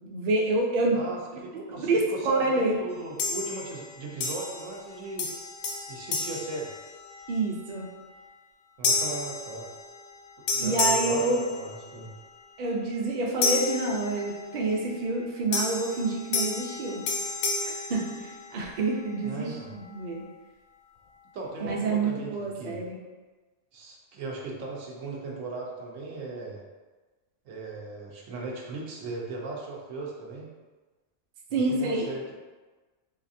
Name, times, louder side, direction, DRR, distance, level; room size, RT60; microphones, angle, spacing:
voice 1, 0.0-1.0 1.7-2.7 7.3-7.9 10.6-11.4 12.6-17.0 17.6-20.3 21.7-23.0 31.5-32.1, right 3 dB, 50° right, -1 dB, 0.6 m, -28 dB
voice 2, 0.9-5.3 5.9-6.7 8.8-9.7 10.5-12.1 19.2-19.7 21.3-22.8 23.7-26.6 27.4-30.5 31.5-32.3, right 3 dB, 90° right, -2 dB, 1.1 m, -37 dB
sound 1, 3.2-3.8 4.2-4.9 5.2-7.3 7.9-8.1 8.8-10.2 10.5-12.1 13.4-14.6 15.5-18.8, left 4 dB, 85° left, 0.9 m, -31 dB
4.0 x 2.5 x 2.6 m, 1.3 s
omnidirectional pair, 1.3 m